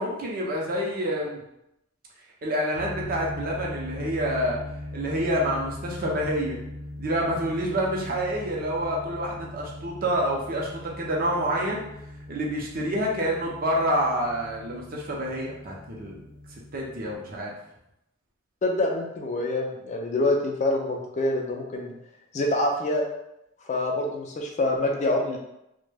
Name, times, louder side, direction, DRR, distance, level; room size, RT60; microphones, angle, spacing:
voice 1, 0.0-1.4 2.4-4.6 4.9-6.6 7.0-11.8 12.3-16.2 16.7-17.5, equal, 45° right, -2 dB, 0.6 m, -27 dB
sound 1, 2.7-17.2, left 1 dB, 90° left, 0.6 m, -40 dB
voice 2, 18.6-21.9 22.3-23.0 23.7-25.4, left 2 dB, 40° left, 1 dB, 0.4 m, -26 dB
2.2 x 2.1 x 3.2 m, 0.83 s
head